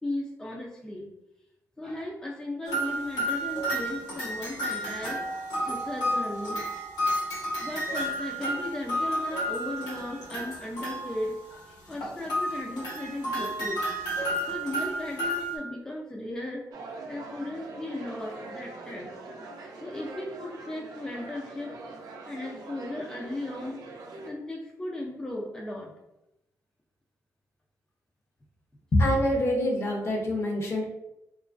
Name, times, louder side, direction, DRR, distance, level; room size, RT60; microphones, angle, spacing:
voice 1, 0.0-1.1 1.8-5.2 5.6-6.7 7.6-13.8 14.1-14.2 14.5-16.7 17.1-19.1 19.8-21.8 22.3-23.8 24.3-25.9, left 1 dB, 10° left, -2 dB, 0.4 m, -36 dB
sound 1, 2.7-11.4 11.9-15.6, equal, 85° left, 1.0 m, -31 dB
sound 2, 16.7-24.3, right 3 dB, 75° right, 0.4 m, -43 dB
voice 2, 28.9-30.8, left 1 dB, 45° left, 0 dB, 0.7 m, -25 dB
2.9 x 2.4 x 2.4 m, 0.87 s
cardioid pair, 90°, 7 cm